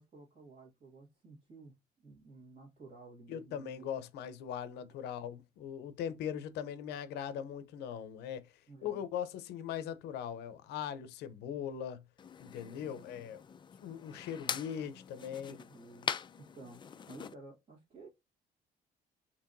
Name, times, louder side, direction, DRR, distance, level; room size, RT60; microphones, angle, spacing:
voice 1, 0.0-1.7 2.0-3.9 8.7-9.0 12.8-13.0 15.5-16.1 16.4-18.1, right 3 dB, 40° right, 2.0 m, -54 dB
voice 2, 3.3-8.5 8.8-12.0 12.4-13.4 13.8-15.6, left 9 dB, 80° left, 0.7 m, -40 dB
sound 1, 12.2-17.3, left 7 dB, 30° left, 0.4 m, -43 dB
4.6 x 2.9 x 2.6 m
cardioid pair, 110°, 17 cm